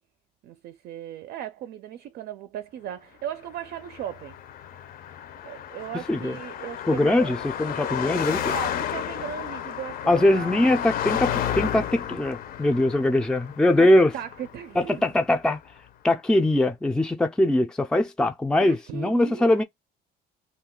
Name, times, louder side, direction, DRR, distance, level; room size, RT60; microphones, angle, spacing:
voice 1, 0.4-4.4 5.4-7.3 8.4-10.7 13.8-13.9 14.1-15.0 18.6-19.6, right 10 dB, 70° right, 0.4 m, -37 dB
Car passing by, 3.6-15.2, left 10 dB, 60° left, 0.6 m, -32 dB
voice 2, 6.9-8.5 10.1-14.1 14.8-15.6 16.0-19.6, left 1 dB, 5° left, 0.4 m, -22 dB
2.3 x 2.3 x 3.6 m
cardioid pair, 110°, 17 cm